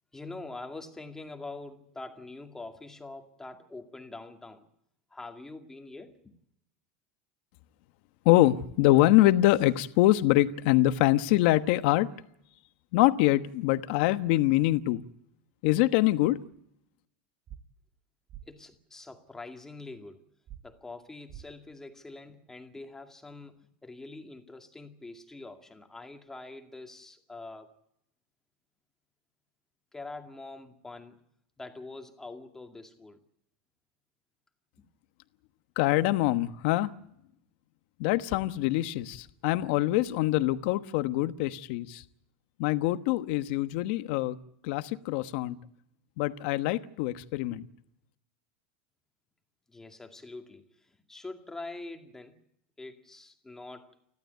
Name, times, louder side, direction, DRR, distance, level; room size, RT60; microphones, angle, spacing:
voice 1, 0.1-4.7 5.1-6.4 18.4-20.3 20.6-27.8 29.9-31.2 31.6-33.2 34.8-34.9 49.7-52.4 52.8-54.0, left 2 dB, 10° left, 2.2 m, -44 dB
voice 2, 8.2-12.1 12.9-15.0 15.6-16.4 35.8-36.9 38.0-42.0 42.6-44.4 44.6-45.6 46.2-47.7, left 16 dB, 60° left, 1.2 m, -24 dB
sound 1, 17.5-17.6 18.3-18.4 20.5-20.6 21.3-21.4, right 11 dB, 35° right, 1.4 m, -44 dB
29.5 x 12.5 x 9.2 m
supercardioid pair, 150°, 6 cm